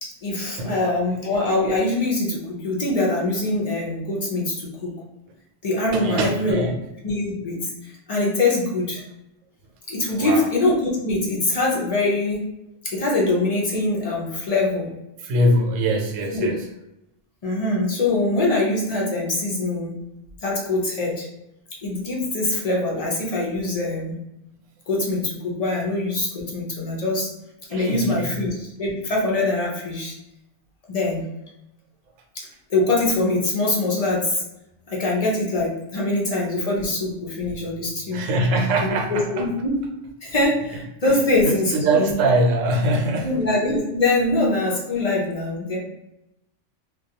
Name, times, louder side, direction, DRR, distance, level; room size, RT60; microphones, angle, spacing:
voice 1, 0.0-4.9 5.6-6.7 7.0-9.0 9.9-12.4 12.8-14.9 16.3-16.5 17.4-19.9 20.4-21.3 21.8-24.1 24.9-27.3 27.7-30.2 30.9-31.3 32.3-34.4 34.9-38.2 38.8-39.8 40.2-42.1 43.2-45.8, left 2 dB, 50° left, -3 dB, 0.4 m, -23 dB
voice 2, 5.9-6.8 10.1-10.5 15.2-16.7 27.7-28.4 38.1-39.5 41.0-41.1 41.4-43.4, right 1 dB, 90° right, 2 dB, 0.9 m, -23 dB
2.3 x 2.2 x 2.7 m, 0.87 s
omnidirectional pair, 1.3 m